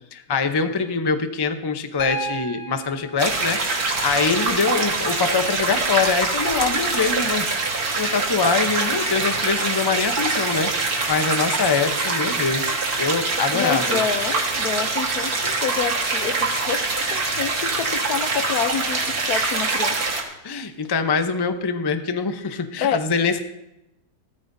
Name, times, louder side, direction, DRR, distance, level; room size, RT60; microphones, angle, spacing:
voice 1, 0.1-14.0 20.4-23.4, left 5 dB, 25° left, 7 dB, 0.6 m, -24 dB
Piano, 2.0-6.0 7.6-7.7, right 1 dB, 90° left, 2.5 m, -36 dB
sound 1, 3.2-20.2, right 3 dB, 65° right, 2.2 m, -24 dB
voice 2, 13.5-20.1 22.8-23.0, left 7 dB, 70° left, 9 dB, 1.3 m, -28 dB
17.5 x 14.0 x 2.7 m, 0.92 s
omnidirectional pair, 1.7 m